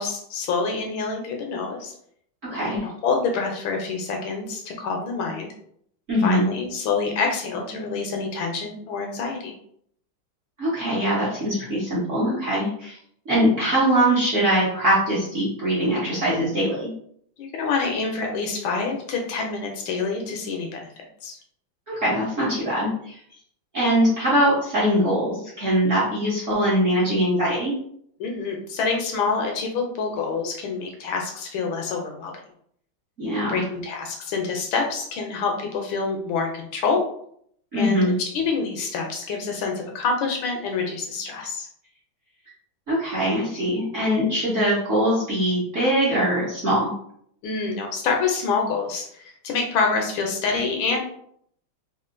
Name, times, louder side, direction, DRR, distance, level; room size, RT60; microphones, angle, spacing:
voice 1, 0.0-1.9 2.5-5.5 6.2-9.5 17.4-21.4 28.2-32.3 33.5-37.0 37.7-41.7 47.4-51.0, left 4 dB, 75° left, 2 dB, 1.3 m, -27 dB
voice 2, 2.5-2.8 6.1-6.5 10.6-13.0 13.3-16.9 21.9-23.2 23.7-27.7 33.2-33.6 37.7-38.1 42.9-46.9, equal, 50° right, -9 dB, 0.9 m, -22 dB
3.6 x 2.4 x 2.5 m, 0.67 s
omnidirectional pair, 2.4 m